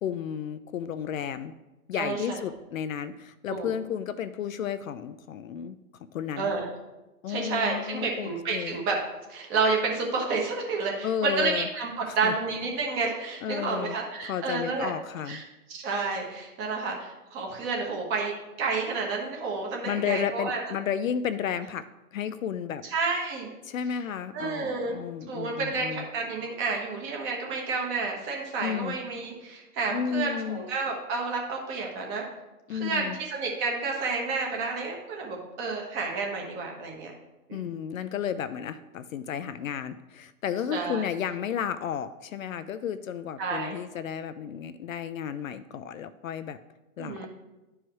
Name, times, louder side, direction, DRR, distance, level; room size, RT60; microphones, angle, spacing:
voice 1, 0.0-1.5 1.9-5.8 6.1-6.5 7.2-8.8 11.0-11.7 12.1-12.3 13.4-14.0 14.2-15.4 19.8-21.8 22.1-22.8 23.6-26.0 28.6-29.0 29.9-30.6 32.7-33.2 37.5-46.6 47.0-47.3, left 8 dB, 60° left, 12 dB, 0.5 m, -32 dB
voice 2, 1.9-2.4 3.5-3.7 6.4-6.7 7.3-9.0 9.3-14.9 15.3-15.4 15.7-20.6 22.8-23.5 24.3-25.0 25.3-32.2 32.7-37.1 37.5-37.8 40.7-41.0 43.4-43.8 47.0-47.3, right 4 dB, 25° right, 0 dB, 1.3 m, -30 dB
11.0 x 4.7 x 3.1 m, 1.0 s
hypercardioid pair, 140°, 46 cm